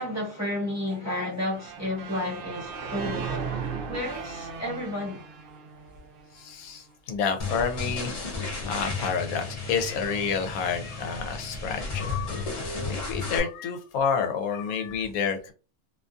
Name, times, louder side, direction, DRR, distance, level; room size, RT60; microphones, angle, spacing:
voice 1, 0.0-3.5 3.9-5.2, left 1 dB, 15° right, 0.9 m, -31 dB
sound 1, 1.5-6.5, right 5 dB, 80° right, 0.5 m, -36 dB
voice 2, 6.3-8.2 8.7-15.5, left 6 dB, 80° left, 1.1 m, -29 dB
sound 2, 7.4-13.4, left 3 dB, 45° left, 0.4 m, -33 dB
2.6 x 2.3 x 2.5 m
omnidirectional pair, 1.5 m